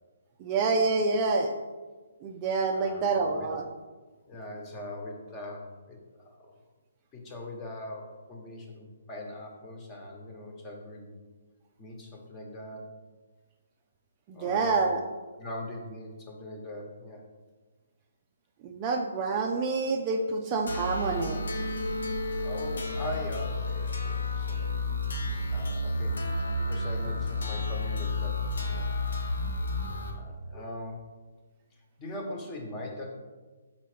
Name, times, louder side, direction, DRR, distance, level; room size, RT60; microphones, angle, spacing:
voice 1, 0.4-1.5 2.2-3.6 14.3-15.0 18.6-21.4, right 4 dB, 25° right, 2 dB, 0.5 m, -27 dB
voice 2, 2.7-3.5 4.3-6.6 7.1-11.1 11.8-12.9 14.3-14.8 15.4-17.2 22.4-24.7 25.5-26.2 26.6-28.9 30.1-31.1 32.0-33.2, left 1 dB, 20° left, 1 dB, 1.2 m, -41 dB
sound 1, 20.7-30.1, left 2 dB, 75° left, 1.1 m, -31 dB
5.4 x 4.4 x 5.0 m, 1.3 s
hypercardioid pair, 155°, 0 cm